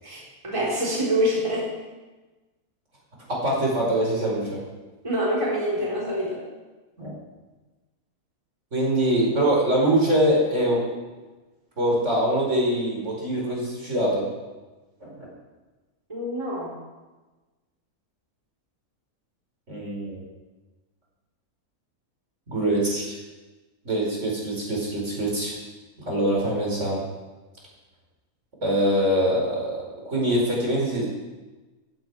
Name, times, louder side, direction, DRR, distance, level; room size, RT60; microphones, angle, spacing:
voice 1, 0.0-1.7 5.0-6.4 16.1-16.8, equal, 20° right, -6 dB, 4.2 m, -26 dB
voice 2, 3.3-4.6 7.0-7.1 8.7-10.9 11.8-14.3 15.0-15.1 19.7-20.2 22.5-23.2 23.8-25.5 26.1-27.0 28.6-31.0, right 1 dB, 50° right, -3 dB, 4.9 m, -23 dB
16.5 x 15.5 x 4.8 m, 1.2 s
omnidirectional pair, 1.6 m